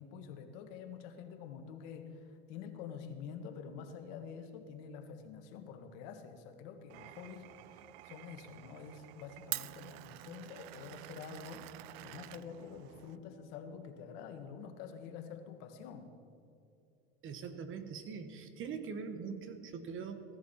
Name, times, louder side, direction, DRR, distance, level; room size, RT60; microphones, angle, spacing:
voice 1, 0.0-11.7 12.0-16.1, left 7 dB, 65° left, 7 dB, 1.5 m, -47 dB
Glass, 6.9-13.2, right 19 dB, 70° right, 0.5 m, -47 dB
Bowed string instrument, 10.7-15.4, equal, 45° left, 3.7 m, -64 dB
voice 2, 17.2-20.2, right 6 dB, 40° right, 9 dB, 1.3 m, -42 dB
16.0 x 11.0 x 4.3 m, 2.6 s
supercardioid pair, 100°, 31 cm